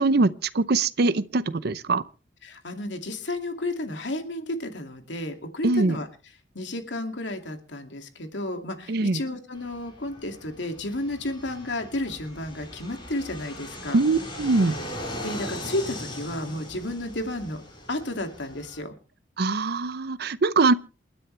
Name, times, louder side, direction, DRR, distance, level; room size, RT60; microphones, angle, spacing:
voice 1, 0.0-2.0 5.6-6.0 8.9-9.2 13.9-14.8 19.4-20.7, right 3 dB, 60° right, 0.6 m, -22 dB
voice 2, 2.4-6.1 6.5-14.0 15.2-17.6 17.9-19.0, left 1 dB, 85° left, 2.4 m, -32 dB
Fixed-wing aircraft airplane, 9.5-18.8, left 1 dB, 30° left, 5.7 m, -39 dB
28.5 x 9.9 x 3.3 m
head